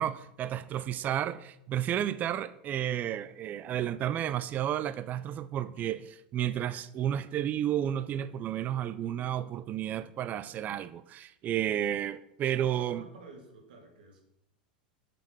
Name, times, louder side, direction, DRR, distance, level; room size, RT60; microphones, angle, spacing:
voice 1, 0.0-13.1, right 10 dB, 35° right, 0.5 m, -32 dB
voice 2, 12.4-14.2, right 3 dB, 75° right, 2.7 m, -51 dB
8.2 x 6.8 x 6.3 m
hypercardioid pair, 105°, 5 cm